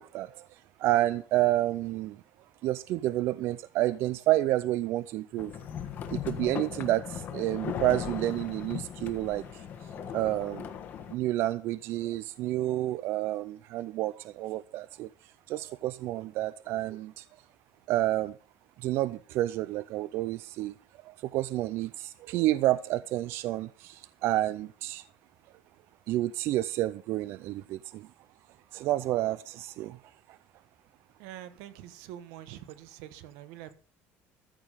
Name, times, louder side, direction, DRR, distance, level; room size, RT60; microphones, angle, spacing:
voice 1, 0.0-2.2 2.6-5.5 6.1-10.7 11.1-17.3 17.9-18.4 18.8-20.8 21.0-25.0 26.1-28.1 28.7-30.0 30.3-30.4, right 15 dB, 55° right, 0.4 m, -30 dB
sound 1, 5.4-11.1, left 8 dB, 40° left, 1.3 m, -38 dB
voice 2, 31.2-33.7, right 12 dB, 85° right, 1.2 m, -45 dB
13.5 x 7.6 x 5.0 m
cardioid pair, 165°, 5 cm